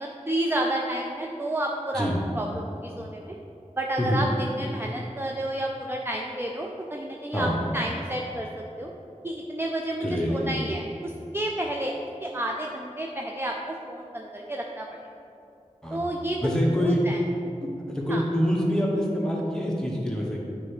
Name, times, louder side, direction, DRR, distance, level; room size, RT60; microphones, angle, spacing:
voice 1, 0.0-2.1 2.3-3.3 3.8-8.5 8.8-8.9 9.2-11.9 12.2-14.9 15.9-16.4 16.8-17.2 18.1-18.2, right 1 dB, 15° right, 0 dB, 0.5 m, -30 dB
voice 2, 10.0-10.5 15.8-16.0 16.4-17.0 17.6-20.4, equal, 5° left, -4 dB, 1.4 m, -25 dB
8.7 x 3.4 x 4.9 m, 2.7 s
wide cardioid pair, 40°, 13 cm